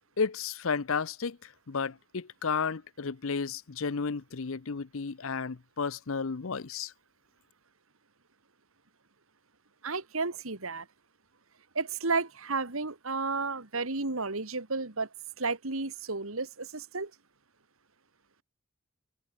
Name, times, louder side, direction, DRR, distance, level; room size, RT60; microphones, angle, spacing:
voice 1, 0.2-1.4 1.7-6.9, left 5 dB, 65° left, 0.7 m, -32 dB
voice 2, 9.8-10.9 11.7-15.1 15.4-17.1, right 3 dB, 70° right, 2.2 m, -32 dB
head